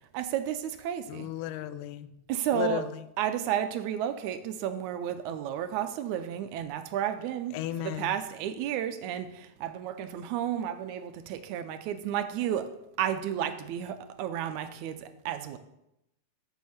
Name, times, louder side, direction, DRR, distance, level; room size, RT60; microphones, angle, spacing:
voice 1, 0.1-1.3 2.3-2.8 3.2-7.6 8.0-12.7 13.0-15.6, right 10 dB, 85° right, 10 dB, 2.0 m, -32 dB
voice 2, 1.1-2.2 2.5-3.1 7.5-8.2, left 11 dB, 85° left, 14 dB, 2.0 m, -35 dB
6.6 x 6.3 x 7.0 m, 0.85 s
omnidirectional pair, 3.5 m